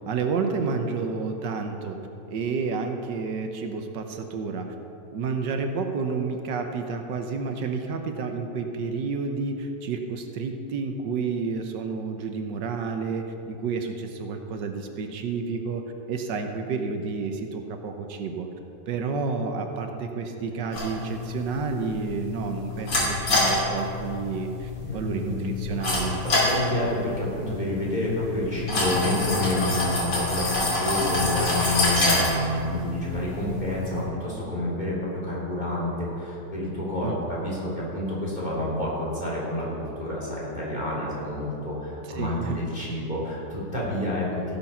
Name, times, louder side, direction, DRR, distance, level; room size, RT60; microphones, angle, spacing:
voice 1, 0.1-2.0 2.3-4.7 5.1-18.5 18.9-26.2 37.0-37.2 42.1-42.6, right 4 dB, 85° right, 5 dB, 1.6 m, -30 dB
sound 1, 20.7-34.0, left 2 dB, 85° left, 3.5 m, -27 dB
voice 2, 24.8-25.5 26.2-34.9 35.2-44.6, left 1 dB, 25° left, -6 dB, 3.5 m, -29 dB
16.5 x 7.6 x 5.7 m, 2.9 s
omnidirectional pair, 1.9 m